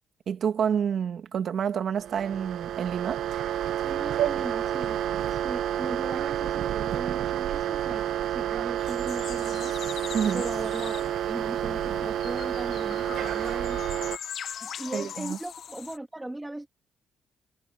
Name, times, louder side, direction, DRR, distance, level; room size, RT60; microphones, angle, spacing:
voice 1, 0.3-3.2 10.1-10.4 14.9-15.4, right 8 dB, 60° right, 2.5 m, -28 dB
sound 1, 1.9-14.2, right 11 dB, 80° right, 1.8 m, -29 dB
voice 2, 3.8-5.0 5.3-9.8 10.3-13.8 14.6-16.7, right 1 dB, 10° right, 2.4 m, -38 dB
sound 2, 8.8-16.0, left 8 dB, 65° left, 1.5 m, -41 dB
cardioid pair, 90°, 0 cm